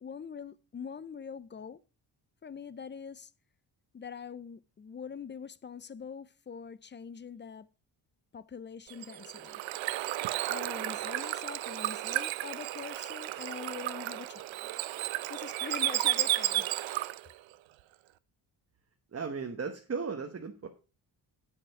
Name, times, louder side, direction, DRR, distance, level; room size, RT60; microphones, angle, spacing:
voice 1, 0.0-1.8 2.4-3.3 3.9-7.7 8.3-9.6 10.5-14.6 15.3-16.7, left 6 dB, 25° left, 0.4 m, -43 dB
Bird / Water, 8.9-17.3, right 15 dB, 90° right, 0.6 m, -33 dB
voice 2, 19.1-20.7, right 5 dB, 35° right, 1.1 m, -36 dB
7.7 x 7.7 x 4.6 m
cardioid pair, 105°, 45 cm